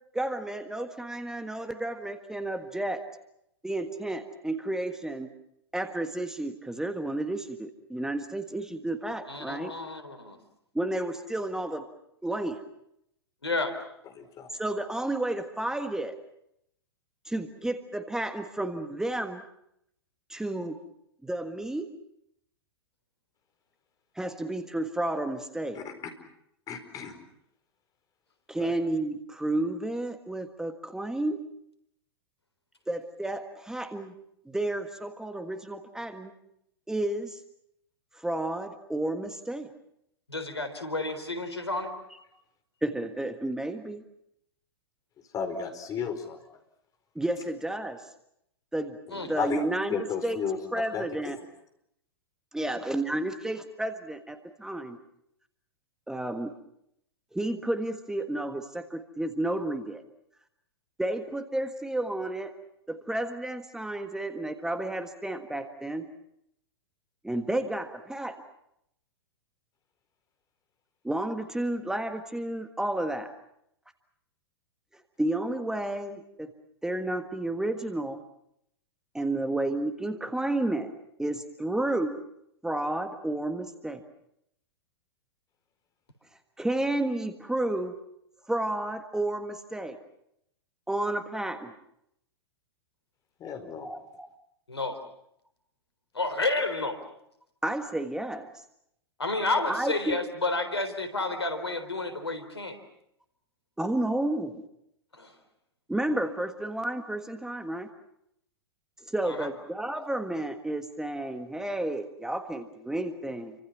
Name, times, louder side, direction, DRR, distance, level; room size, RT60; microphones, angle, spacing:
voice 1, 0.1-3.0 3.6-5.3 5.7-9.8 10.7-11.8 12.2-12.6 14.6-16.1 17.2-19.4 20.3-20.8 21.2-21.9 24.1-25.8 28.5-31.4 32.9-34.1 34.4-36.3 36.9-37.4 38.1-39.7 42.8-44.0 47.1-48.0 48.7-49.0 49.2-49.9 50.2-50.4 50.7-51.4 52.5-55.0 56.1-56.5 57.3-60.0 61.0-62.5 62.9-66.0 67.2-68.4 71.0-73.3 75.2-76.5 76.8-78.2 79.1-80.9 81.2-82.2 82.6-84.0 86.6-87.9 88.5-90.0 90.9-91.7 93.8-94.3 97.6-98.5 99.7-100.2 103.8-104.6 105.9-107.9 109.0-113.5, right 1 dB, 5° right, 1.6 m, -31 dB
voice 2, 9.3-10.4 13.4-13.7 40.3-41.9 49.1-49.3 94.7-95.0 96.1-97.0 99.2-102.8 105.1-105.3 109.3-109.5, left 2 dB, 85° left, 4.0 m, -30 dB
voice 3, 14.1-14.5 25.7-25.9 26.7-27.1 28.5-28.7 45.3-46.4 49.1-49.6 49.9-50.6 50.9-51.4 93.4-93.9, left 6 dB, 25° left, 4.6 m, -33 dB
30.0 x 25.0 x 6.0 m
figure-of-eight pair, 100°, 13 cm